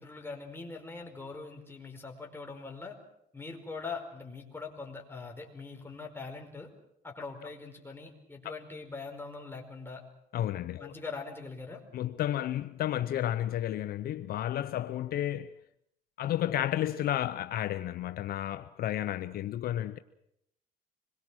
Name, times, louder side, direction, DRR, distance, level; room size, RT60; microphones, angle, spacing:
voice 1, 0.0-3.0 3.3-6.7 7.0-10.0 10.8-11.8, left 4 dB, 15° left, 4.8 m, -42 dB
voice 2, 10.3-10.9 11.9-15.5 16.2-20.0, left 12 dB, 65° left, 0.8 m, -32 dB
26.5 x 22.0 x 6.3 m
cardioid pair, 110°, 17 cm